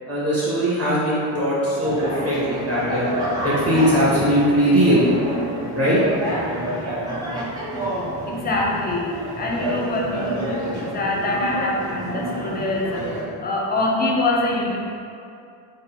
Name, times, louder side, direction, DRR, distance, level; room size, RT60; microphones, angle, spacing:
voice 1, 0.0-3.1 3.4-5.1 5.7-6.0, equal, 35° right, -8 dB, 1.4 m, -20 dB
sound 1, 1.8-13.2, right 1 dB, 10° right, 0.7 m, -28 dB
voice 2, 8.3-14.8, left 2 dB, 25° left, -2 dB, 0.4 m, -24 dB
3.6 x 2.0 x 4.3 m, 2.5 s
cardioid pair, 130°, 42 cm